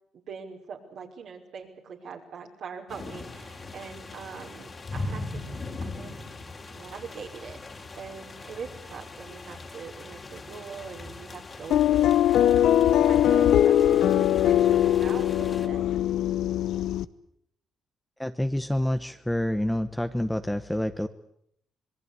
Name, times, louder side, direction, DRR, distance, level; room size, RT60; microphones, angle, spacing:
voice 1, 0.1-5.5 5.8-6.1 6.7-15.8, right 6 dB, 70° right, -1 dB, 5.1 m, -42 dB
sound 1, 2.9-15.7, left 3 dB, 35° left, 3.2 m, -40 dB
sound 2, 11.7-17.1, left 11 dB, 80° left, 0.9 m, -21 dB
voice 2, 18.2-21.1, left 1 dB, 5° left, 8 dB, 1.2 m, -28 dB
26.5 x 20.5 x 8.4 m, 0.72 s
cardioid pair, 90°, 0 cm